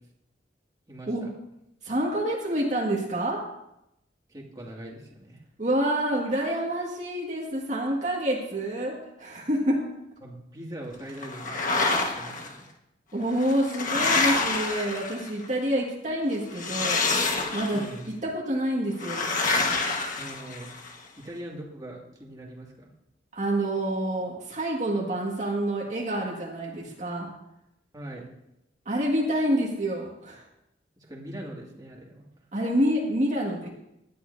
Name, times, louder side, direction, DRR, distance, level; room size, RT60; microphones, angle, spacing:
voice 1, 0.9-1.3 4.3-5.4 10.2-11.8 12.1-12.7 17.7-18.1 20.2-20.7 21.2-22.9 27.9-28.2 31.0-32.3, right 1 dB, 20° right, -3 dB, 2.4 m, -41 dB
voice 2, 1.8-3.4 5.6-9.9 13.1-17.1 17.5-17.9 18.2-19.3 23.3-27.3 28.9-30.4 32.5-33.7, right 1 dB, 40° right, -3 dB, 2.0 m, -27 dB
sound 1, 11.2-12.5 13.3-15.4 16.5-17.9 19.0-20.9, left 3 dB, 45° left, 1.6 m, -27 dB
19.0 x 12.0 x 2.8 m, 0.84 s
head